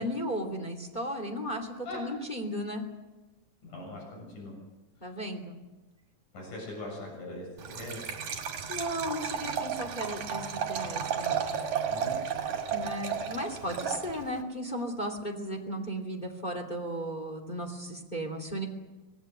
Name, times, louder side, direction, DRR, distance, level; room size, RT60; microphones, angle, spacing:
voice 1, 0.0-2.9 5.0-5.6 8.7-11.6 12.7-18.7, equal, 15° left, 2 dB, 2.7 m, -35 dB
voice 2, 3.6-4.5 6.3-8.0 11.9-12.2, left 1 dB, 80° left, -1 dB, 8.4 m, -41 dB
Liquid, 7.6-14.4, right 7 dB, 65° right, 3.6 m, -33 dB
25.5 x 19.0 x 8.1 m, 1.1 s
omnidirectional pair, 3.6 m